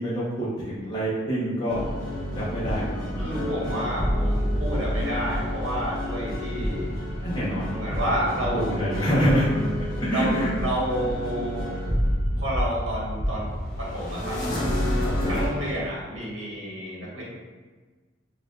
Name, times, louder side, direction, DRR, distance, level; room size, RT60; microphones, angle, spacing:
voice 1, 0.0-1.8 2.4-3.3 7.2-9.5 9.8-10.5 15.0-15.4, equal, 25° left, -9 dB, 0.8 m, -27 dB
sound 1, 1.7-15.5, equal, 45° left, 1.0 m, -28 dB
voice 2, 3.2-6.9 7.7-8.8 10.1-11.7 12.4-13.5 13.8-14.4 15.3-17.2, equal, 80° right, -6 dB, 1.4 m, -30 dB
5.3 x 2.4 x 2.5 m, 1.4 s
head